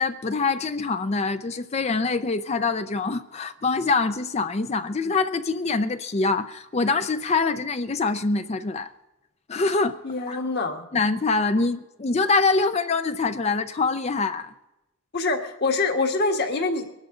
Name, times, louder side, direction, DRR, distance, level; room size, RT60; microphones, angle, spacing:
voice 1, 0.0-8.9 9.5-10.0 10.3-10.4 10.9-14.5, left 3 dB, 30° left, 10 dB, 0.5 m, -24 dB
voice 2, 10.0-10.8 15.1-16.9, left 3 dB, 50° left, 4 dB, 1.5 m, -25 dB
21.5 x 12.5 x 3.7 m, 0.95 s
head